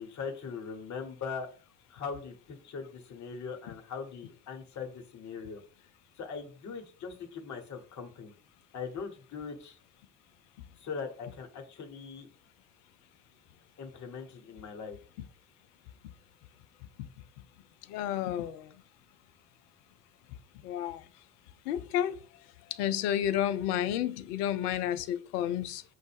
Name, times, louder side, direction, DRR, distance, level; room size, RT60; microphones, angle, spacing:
voice 1, 0.0-1.5 1.9-5.6 6.2-8.3 8.7-9.8 10.8-12.3 13.8-15.0, left 5 dB, 35° left, 1.0 m, -40 dB
voice 2, 17.9-18.7 20.6-21.0 21.7-22.2 22.7-25.8, left 11 dB, 75° left, 0.5 m, -31 dB
6.1 x 2.0 x 3.4 m
hypercardioid pair, 55°, 47 cm